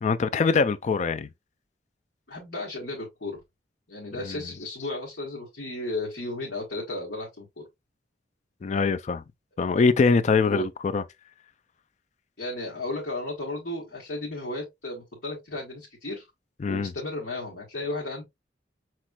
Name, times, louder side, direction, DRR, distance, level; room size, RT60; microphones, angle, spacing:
voice 1, 0.0-1.3 4.2-4.4 8.6-9.2 9.6-11.0 16.6-16.9, left 4 dB, 40° left, 0.4 m, -23 dB
voice 2, 2.3-3.4 3.9-7.6 10.4-10.6 12.4-16.2 16.7-18.2, left 2 dB, 65° left, 1.3 m, -34 dB
5.8 x 3.0 x 2.3 m
head